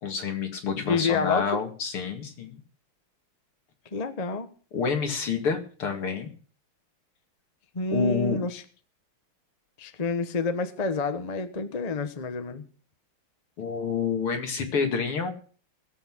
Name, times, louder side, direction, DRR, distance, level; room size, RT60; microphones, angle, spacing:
voice 1, 0.0-2.6 4.7-6.3 7.9-8.4 13.6-15.3, left 5 dB, 75° left, 3.1 m, -28 dB
voice 2, 0.8-1.6 3.9-4.5 7.7-8.6 9.8-12.7, left 4 dB, 25° left, 0.9 m, -28 dB
18.5 x 8.0 x 6.2 m
omnidirectional pair, 2.4 m